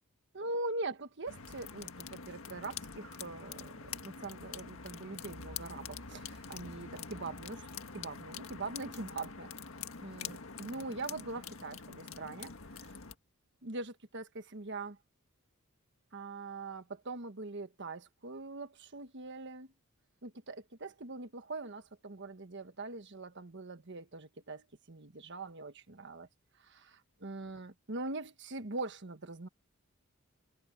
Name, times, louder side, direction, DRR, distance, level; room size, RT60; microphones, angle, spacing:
voice 1, 0.3-7.7 7.9-9.5 10.0-12.9 13.6-15.0 16.1-19.7 20.2-26.3 26.6-29.5, right 3 dB, 55° right, 1.4 m, -42 dB
sound 1, 1.3-13.1, left 6 dB, 75° left, 1.7 m, -45 dB
head